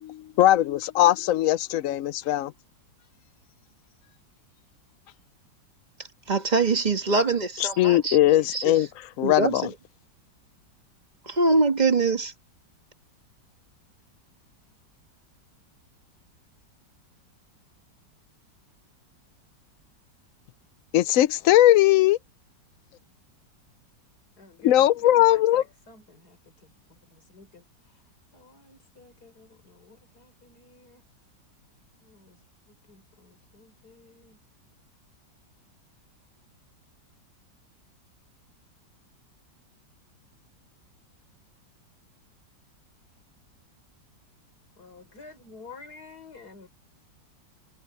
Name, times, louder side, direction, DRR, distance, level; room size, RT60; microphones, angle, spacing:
voice 1, 0.0-2.5 7.6-8.9 9.2-9.7 20.9-22.2 24.6-25.6, left 14 dB, 75° left, 0.7 m, -20 dB
voice 2, 6.3-8.2 8.5-8.6 9.2-9.7 11.3-12.3, right 3 dB, 25° right, 1.4 m, -23 dB
voice 3, 24.4-28.0 28.3-31.1 31.9-32.4 32.7-34.4 44.8-46.7, left 4 dB, 60° left, 4.7 m, -50 dB
omnidirectional pair, 2.0 m